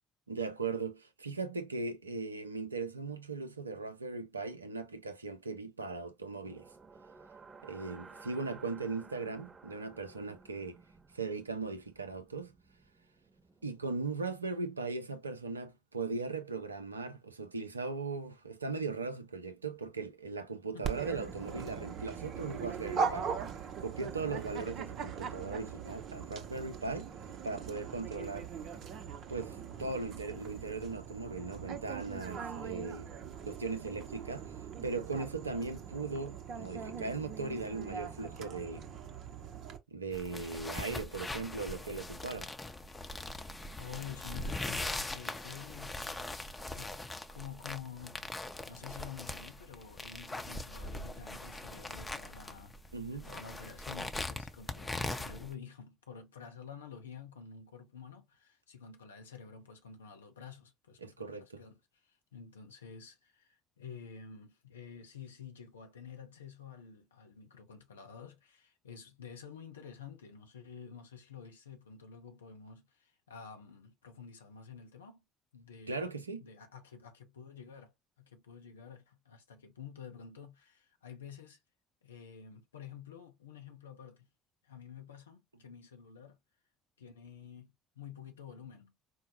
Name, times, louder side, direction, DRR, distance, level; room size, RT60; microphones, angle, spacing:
voice 1, 0.3-6.7 7.6-10.8 11.1-12.5 13.6-23.3 23.8-27.1 27.4-28.5 29.3-33.1 33.5-34.5 34.8-38.9 39.9-42.5 52.9-53.3 61.0-61.6 75.9-76.5, right 3 dB, 90° right, 0.4 m, -38 dB
sound 1, 6.4-14.4, right 4 dB, 30° right, 0.9 m, -56 dB
Dog, 20.8-39.8, right 6 dB, 55° right, 0.7 m, -41 dB
sound 2, 40.1-55.5, left 2 dB, 15° left, 0.7 m, -41 dB
voice 2, 43.8-46.0 46.7-52.8 53.1-75.2 75.5-76.1 76.4-81.6 82.0-84.3 84.6-86.4 87.0-88.9, left 7 dB, 80° left, 0.6 m, -50 dB
4.5 x 2.1 x 2.9 m
figure-of-eight pair, 50°, 0 cm